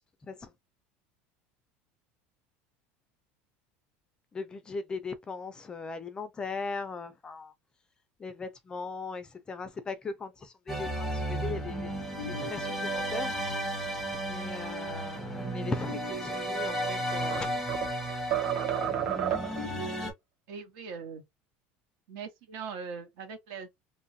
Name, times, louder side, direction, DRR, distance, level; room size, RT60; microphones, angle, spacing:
voice 1, 4.3-7.5 8.2-12.0 12.3-13.4 14.1-17.5, left 4 dB, 15° left, 0.4 m, -39 dB
sound 1, 10.7-20.1, right 1 dB, ahead, 0.8 m, -33 dB
sound 2, 16.6-18.0 18.3-19.7, right 10 dB, 45° right, 0.6 m, -31 dB
voice 2, 20.5-21.2 22.1-23.7, right 5 dB, 65° right, 1.1 m, -41 dB
2.9 x 2.3 x 2.7 m
cardioid pair, 160°, 5 cm